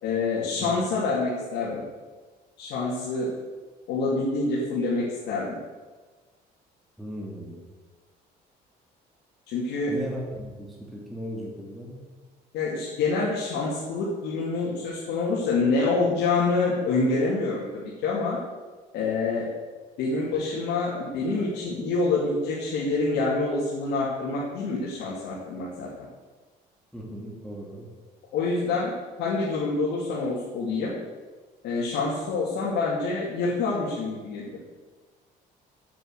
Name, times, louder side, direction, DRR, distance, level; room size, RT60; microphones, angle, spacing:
voice 1, 0.0-1.8 2.6-3.3 3.9-5.6 9.5-9.9 12.5-18.4 18.9-19.5 20.0-25.9 28.3-28.9 29.2-30.9 31.6-34.6, left 3 dB, 85° left, -6 dB, 2.6 m, -26 dB
voice 2, 7.0-7.6 9.9-12.0 26.9-27.9, equal, ahead, -3 dB, 2.6 m, -37 dB
8.2 x 7.8 x 8.0 m, 1.3 s
cardioid pair, 110°, 17 cm